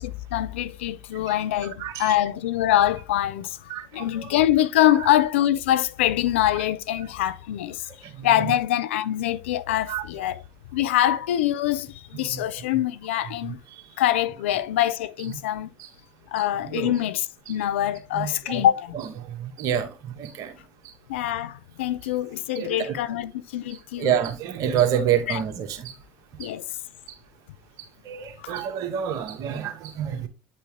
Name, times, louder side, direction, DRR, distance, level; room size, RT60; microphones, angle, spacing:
voice 1, 0.0-7.9 8.2-10.4 10.7-13.6 14.0-15.7 16.3-19.0 21.1-24.2 25.3-25.4 26.4-26.7 28.4-28.5, left 12 dB, 85° left, 0.5 m, -24 dB
voice 2, 1.8-2.2 3.7-4.3 8.2-8.3 9.9-10.0 12.2-12.5 16.7-16.9 18.1-18.6 19.4-19.9 20.2-20.5 22.5-22.9 24.0-25.9 28.0-30.3, right 9 dB, 65° right, 1.6 m, -27 dB
9.6 x 4.3 x 3.6 m
hypercardioid pair, 65°, 6 cm